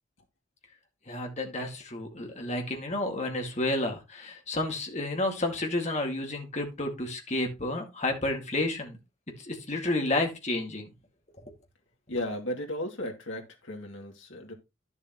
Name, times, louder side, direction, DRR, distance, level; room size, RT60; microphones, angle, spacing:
voice 1, 1.1-9.0 9.4-10.9, left 2 dB, 35° left, 2.1 m, -31 dB
voice 2, 12.1-14.5, left 1 dB, 75° left, 2.6 m, -35 dB
11.0 x 7.1 x 3.0 m
head